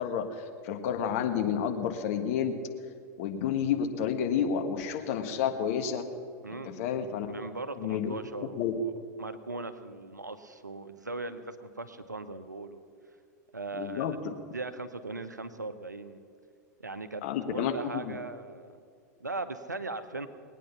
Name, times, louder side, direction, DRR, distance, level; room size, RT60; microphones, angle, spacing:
voice 1, 0.0-2.6 3.2-6.0 6.6-7.3 7.8-8.2 8.6-8.7 13.7-14.3 17.2-18.1, left 8 dB, 55° left, 6 dB, 1.5 m, -30 dB
voice 2, 6.4-6.8 7.3-8.9 9.2-12.8 13.5-14.2 14.5-16.2 16.8-17.2 17.5-18.7 19.2-20.3, right 3 dB, 90° right, 10 dB, 0.8 m, -39 dB
20.5 x 9.2 x 5.7 m, 2.2 s
figure-of-eight pair, 90°, 9 cm